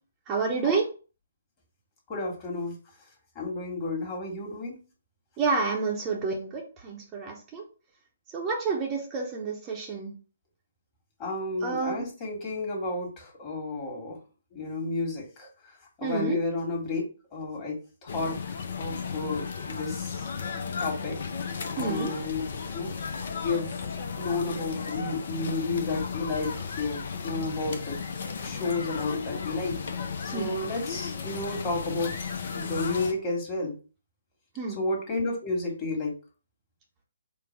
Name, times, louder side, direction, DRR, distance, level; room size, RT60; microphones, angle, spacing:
voice 1, 0.3-0.9 5.4-7.6 8.3-10.1 11.6-12.1 16.0-16.4 21.8-22.1 30.3-30.6 34.6-34.8, right 4 dB, 20° right, -1 dB, 0.8 m, -29 dB
voice 2, 2.1-2.8 3.3-4.8 11.2-14.2 14.5-15.5 16.0-17.0 17.3-18.4 18.8-20.3 20.8-21.2 21.7-22.4 22.7-22.9 23.4-23.7 24.2-28.0 28.4-29.8 30.3-32.1 32.5-33.8 34.7-36.1, left 3 dB, 25° left, -1 dB, 1.6 m, -31 dB
sound 1, 18.1-33.1, left 5 dB, 55° left, 0.6 m, -34 dB
4.5 x 2.2 x 4.5 m, 0.35 s
figure-of-eight pair, 135°, 0 cm